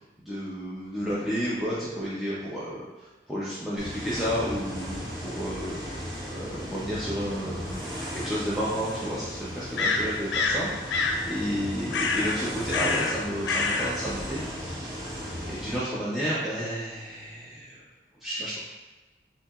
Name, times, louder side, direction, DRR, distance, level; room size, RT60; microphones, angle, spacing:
voice 1, 0.2-5.9 6.3-7.8 8.1-15.0 15.5-17.8 18.2-18.6, equal, ahead, -10 dB, 0.6 m, -32 dB
sound 1, 3.8-15.8, equal, 65° right, 1.3 m, -36 dB
sound 2, 7.7-7.8 9.8-10.6 10.9-11.2 11.9-12.4 12.7-13.2 13.4-13.9, left 3 dB, 90° left, 0.5 m, -26 dB
6.9 x 2.8 x 2.4 m, 1.2 s
head